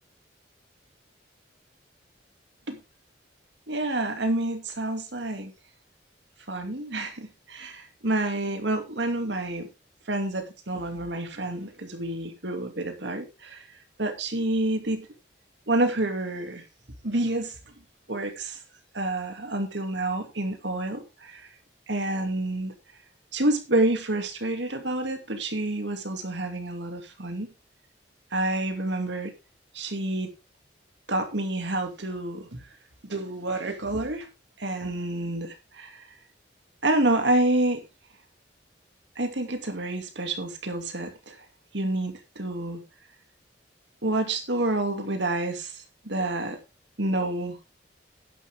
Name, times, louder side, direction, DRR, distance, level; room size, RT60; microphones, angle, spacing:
voice 1, 3.7-5.5 6.5-9.7 10.1-13.6 14.0-15.1 15.7-16.6 17.0-17.6 18.1-18.6 18.9-21.5 21.9-22.7 23.3-27.5 28.3-29.3 29.7-30.3 31.1-32.6 33.0-34.3 34.6-36.0 36.8-37.8 39.2-41.4 41.7-42.8 44.0-46.6 47.0-47.6, right 2 dB, 70° right, 6 dB, 2.5 m, -28 dB
11.5 x 10.0 x 3.6 m, 0.28 s
head